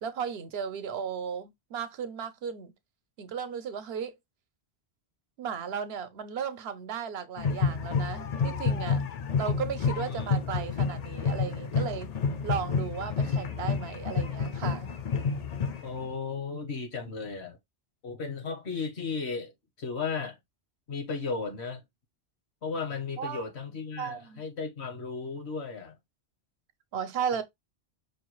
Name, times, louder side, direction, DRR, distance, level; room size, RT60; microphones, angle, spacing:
voice 1, 0.0-2.7 3.2-4.1 5.4-9.0 9.4-12.1 12.4-14.9 23.2-23.4 24.0-24.4 26.9-27.4, right 7 dB, 70° right, 0.9 m, -35 dB
sound 1, 7.4-16.1, left 5 dB, 50° left, 0.5 m, -29 dB
voice 2, 10.0-10.4 15.8-17.6 18.0-19.5 19.8-20.4 20.9-21.8 22.6-26.0 27.3-27.4, left 5 dB, 80° left, 1.4 m, -35 dB
4.9 x 2.3 x 3.0 m
omnidirectional pair, 1.1 m